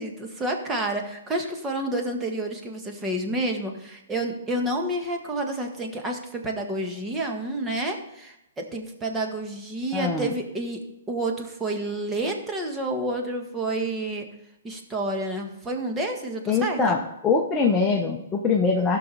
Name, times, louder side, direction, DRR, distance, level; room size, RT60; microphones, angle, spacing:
voice 1, 0.0-10.8 11.1-14.3 14.6-17.0, right 1 dB, 15° right, 2 dB, 1.6 m, -29 dB
voice 2, 9.9-10.3 16.5-19.0, left 4 dB, 15° left, -1 dB, 1.1 m, -23 dB
15.0 x 6.1 x 4.2 m, 0.88 s
hypercardioid pair, 135°, 0 cm